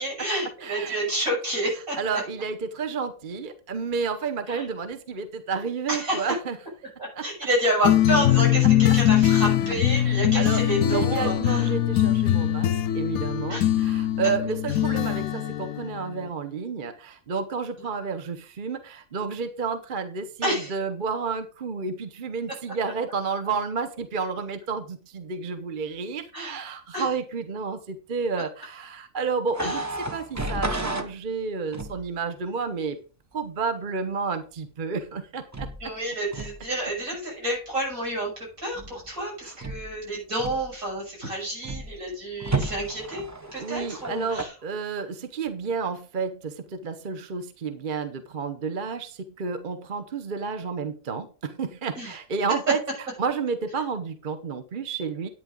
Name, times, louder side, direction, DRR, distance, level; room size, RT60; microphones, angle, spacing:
voice 1, 0.0-2.2 4.5-4.7 5.9-6.3 7.0-11.7 13.5-13.7 17.8-17.9 20.4-20.7 26.3-26.6 26.9-27.1 29.6-29.8 35.8-44.5 52.0-52.1, right 1 dB, 75° right, -2 dB, 7.2 m, -29 dB
voice 2, 0.6-1.0 2.0-6.6 7.2-7.3 9.9-29.8 30.1-33.0 33.3-35.7 39.4-39.5 43.6-52.8 53.2-55.3, right 5 dB, 40° right, 9 dB, 1.0 m, -31 dB
sound 1, 7.8-16.3, left 12 dB, 90° left, 1.1 m, -22 dB
sound 2, 29.5-31.1 31.7-32.1 35.5-35.9 36.3-36.7 38.7-39.1 39.6-40.0 40.4-40.9 41.6-42.0 42.4-44.4, right 2 dB, 15° right, 0.8 m, -32 dB
11.0 x 9.2 x 3.9 m, 0.36 s
omnidirectional pair, 1.5 m